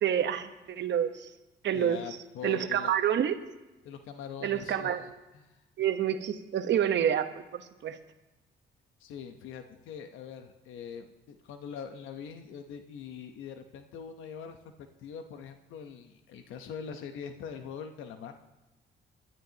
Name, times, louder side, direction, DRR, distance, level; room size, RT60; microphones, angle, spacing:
voice 1, 0.0-1.3 1.6-2.0 2.4-3.4 4.4-5.0 5.8-8.0, right 9 dB, 65° right, 8 dB, 1.1 m, -28 dB
voice 2, 1.7-2.9 3.8-5.6 9.0-14.6 15.0-18.3, left 7 dB, 90° left, 7 dB, 0.9 m, -43 dB
21.5 x 12.5 x 2.9 m, 1.1 s
cardioid pair, 90°, 20 cm